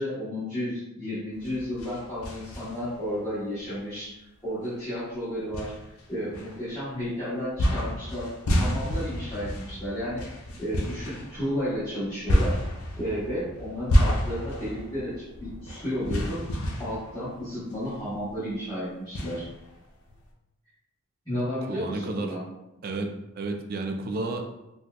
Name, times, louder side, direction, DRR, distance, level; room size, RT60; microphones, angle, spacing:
voice 1, 0.0-4.2 4.4-5.7 6.1-10.2 10.6-12.6 13.0-16.4 16.8-19.5 21.3-22.4, equal, 20° left, -14 dB, 0.9 m, -32 dB
sound 1, 1.3-3.1 3.6-3.7 4.7-4.8 5.5-7.0 7.6-18.0 18.3-18.4 19.1-20.2, equal, 85° left, 0.6 m, -29 dB
voice 2, 21.7-22.3 22.8-23.1 23.4-24.5, right 3 dB, 45° right, 4 dB, 0.3 m, -31 dB
4.0 x 2.3 x 2.2 m, 0.94 s
head